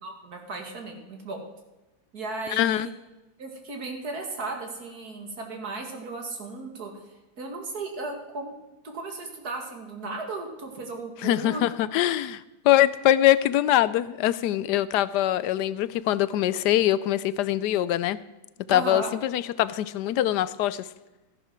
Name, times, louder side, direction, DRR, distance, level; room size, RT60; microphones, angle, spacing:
voice 1, 0.0-1.4 2.1-2.9 3.4-8.6 8.8-11.6 18.7-19.1, right 3 dB, 70° right, 3 dB, 2.5 m, -35 dB
voice 2, 2.5-2.9 11.2-18.2 18.7-20.9, left 13 dB, 85° left, 17 dB, 1.2 m, -23 dB
14.0 x 11.0 x 4.5 m, 1.1 s
omnidirectional pair, 1.7 m